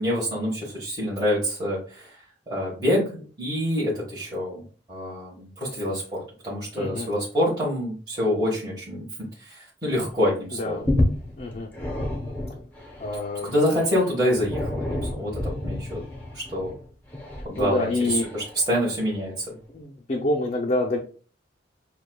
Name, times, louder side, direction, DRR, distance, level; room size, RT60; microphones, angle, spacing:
voice 1, 0.0-9.1 9.4-10.8 13.4-16.0 16.3-16.7 17.4-19.6, equal, 25° right, -7 dB, 1.3 m, -26 dB
voice 2, 6.7-7.1 10.5-10.8 11.4-11.7 13.0-13.6 17.6-18.3 19.7-21.0, left 2 dB, 40° left, -3 dB, 0.6 m, -27 dB
sound 1, 10.1-10.2 10.5-19.1 19.8-19.9, left 1 dB, 10° left, 0.9 m, -30 dB
6.8 x 2.3 x 2.3 m, 0.40 s
head